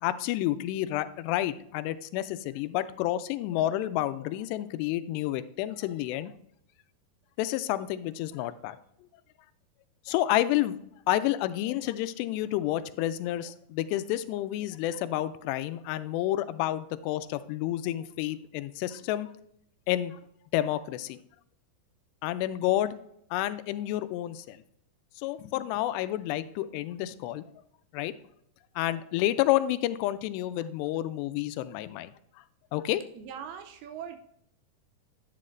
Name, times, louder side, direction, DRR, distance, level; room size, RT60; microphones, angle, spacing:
voice 1, 0.0-6.3 7.4-8.8 10.1-10.8 11.1-19.3 19.9-20.2 20.5-21.2 22.2-23.0 23.3-24.6 25.2-27.5 27.9-28.1 28.8-32.1 32.7-33.0, left 14 dB, 90° left, 13 dB, 2.7 m, -29 dB
voice 2, 33.1-34.2, right 8 dB, 80° right, 6 dB, 2.4 m, -40 dB
9.8 x 9.6 x 2.5 m, 0.72 s
omnidirectional pair, 4.8 m